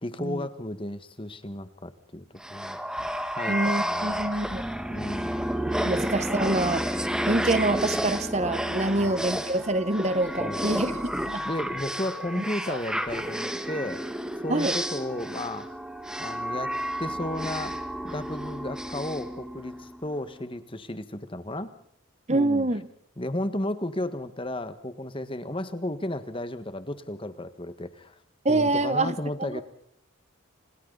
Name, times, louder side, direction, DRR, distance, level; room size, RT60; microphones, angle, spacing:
voice 1, 0.0-2.2 2.5-2.8 3.3-4.3 4.9-5.4 9.0-9.3 10.4-10.9 11.4-14.0 14.4-15.7 16.2-17.7 18.0-21.7 22.3-22.7 23.2-28.2 28.5-29.6, left 1 dB, 25° left, 11 dB, 1.6 m, -34 dB
sound 1, 2.4-20.0, equal, 5° right, 1.4 m, -31 dB
voice 2, 3.5-4.6 5.8-6.8 7.3-10.9 11.2-11.4 12.4-12.8 14.5-14.8 22.3-22.8 28.4-29.6, right 2 dB, 30° right, 13 dB, 1.0 m, -26 dB
30.0 x 26.5 x 4.1 m, 0.67 s
head